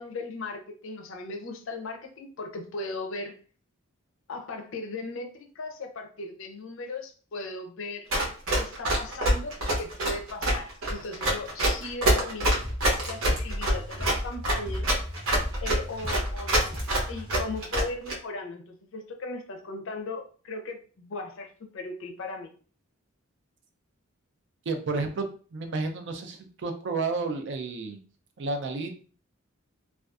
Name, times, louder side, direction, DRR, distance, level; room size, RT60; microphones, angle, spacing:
voice 1, 0.0-3.4 4.3-8.1 8.5-12.6 13.1-14.9 15.6-22.5, left 2 dB, 65° left, 4 dB, 0.5 m, -37 dB
Run, 8.1-18.1, right 1 dB, 75° right, 0.8 m, -25 dB
sound 1, 12.6-17.6, equal, 25° right, 0.7 m, -35 dB
voice 2, 24.7-25.3 25.5-28.0 28.4-28.9, right 3 dB, 60° right, 6 dB, 0.4 m, -31 dB
2.5 x 2.3 x 2.3 m, 0.40 s
head